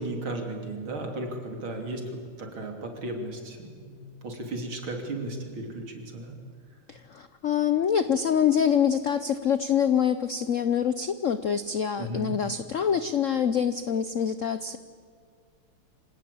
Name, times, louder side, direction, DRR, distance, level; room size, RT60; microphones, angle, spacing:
voice 1, 0.0-2.0 2.4-6.3 12.0-12.3, right 2 dB, 65° right, 3 dB, 3.9 m, -35 dB
voice 2, 6.9-14.8, left 8 dB, 80° left, 12 dB, 0.7 m, -25 dB
26.0 x 18.0 x 8.5 m, 2.1 s
omnidirectional pair, 2.4 m